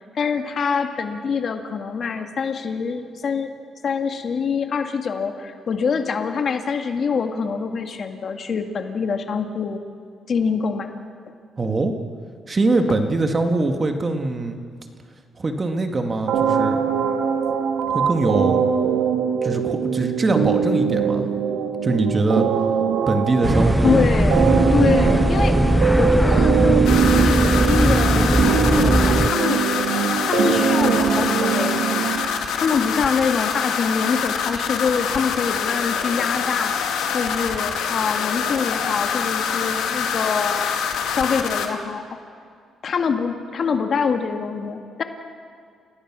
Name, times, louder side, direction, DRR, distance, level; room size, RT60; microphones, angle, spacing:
voice 1, 0.0-3.5 3.8-9.8 10.3-10.9 23.8-29.6 29.9-31.8 32.5-36.8 37.1-40.8 41.1-42.2 42.8-45.0, left 5 dB, 50° left, 5 dB, 2.0 m, -25 dB
voice 2, 11.6-11.9 12.5-14.6 15.4-16.8 17.9-18.6 19.4-21.3 21.8-22.5 23.1-24.0, right 2 dB, 30° right, 5 dB, 2.1 m, -22 dB
sound 1, 16.3-32.3, right 7 dB, 80° right, 1.8 m, -21 dB
sound 2, 23.4-29.3, equal, ahead, 0.5 m, -19 dB
sound 3, 26.8-41.7, left 7 dB, 85° left, 2.2 m, -25 dB
30.0 x 17.0 x 6.2 m, 2.2 s
cardioid pair, 90°, 0 cm